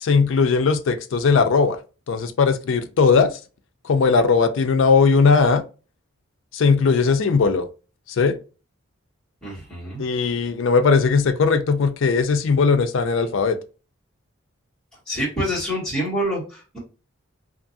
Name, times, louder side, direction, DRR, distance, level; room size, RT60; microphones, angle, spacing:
voice 1, 0.0-1.8 2.1-3.4 3.8-5.6 6.5-7.7 8.1-8.4 10.0-13.6, left 5 dB, 65° left, 0.4 m, -18 dB
voice 2, 9.4-10.0 15.1-16.8, equal, 5° left, 1.3 m, -26 dB
2.6 x 2.5 x 2.5 m
head